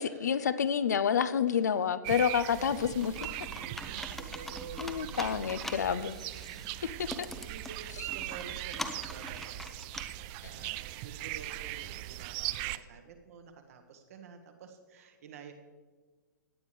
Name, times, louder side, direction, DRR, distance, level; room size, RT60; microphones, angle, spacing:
voice 1, 0.0-3.1 4.8-6.1 10.4-10.7, left 7 dB, 65° left, 15 dB, 0.6 m, -29 dB
sound 1, 2.0-12.8, right 16 dB, 30° right, 0.3 m, -40 dB
Computer keyboard, 3.0-10.0, left 1 dB, ahead, 0.7 m, -43 dB
voice 2, 3.6-6.2 6.8-15.5, right 6 dB, 50° right, 6 dB, 1.4 m, -50 dB
16.5 x 9.6 x 3.3 m, 1.4 s
figure-of-eight pair, 115°, 10 cm